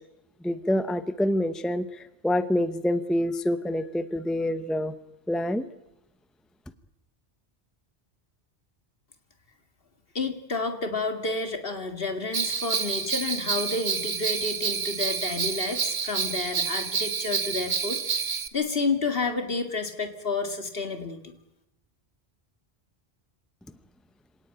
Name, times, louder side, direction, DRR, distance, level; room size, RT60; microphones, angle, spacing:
voice 1, 0.4-4.9 5.3-5.6, left 1 dB, ahead, 12 dB, 0.8 m, -26 dB
voice 2, 10.1-21.3, left 3 dB, 60° left, 7 dB, 2.5 m, -30 dB
Bell, 12.3-18.5, right 6 dB, 60° right, 1.3 m, -29 dB
26.0 x 18.0 x 9.1 m, 0.87 s
omnidirectional pair, 1.1 m